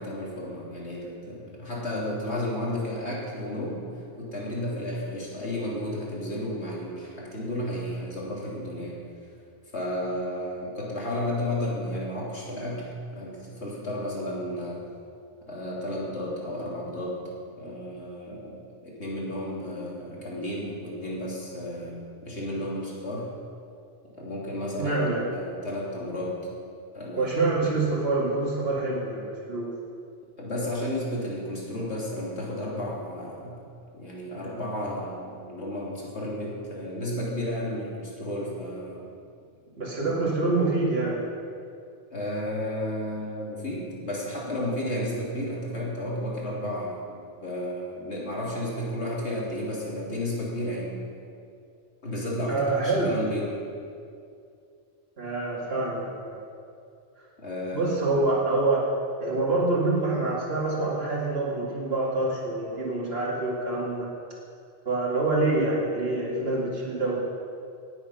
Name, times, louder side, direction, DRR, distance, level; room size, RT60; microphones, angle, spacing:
voice 1, 0.0-3.9 4.2-9.0 9.7-14.9 15.4-17.2 17.6-23.3 24.2-25.0 25.3-26.4 26.9-27.6 30.4-33.6 33.9-39.1 40.0-40.1 42.1-51.0 52.0-53.6 57.4-58.1, left 1 dB, 85° left, -5 dB, 3.3 m, -32 dB
voice 2, 24.8-25.2 27.2-29.7 39.8-41.3 52.5-53.2 55.2-56.4 57.7-58.9 59.2-64.1 64.8-67.2, right 2 dB, 65° right, -5 dB, 2.9 m, -26 dB
18.5 x 8.2 x 5.8 m, 2.4 s
omnidirectional pair, 1.1 m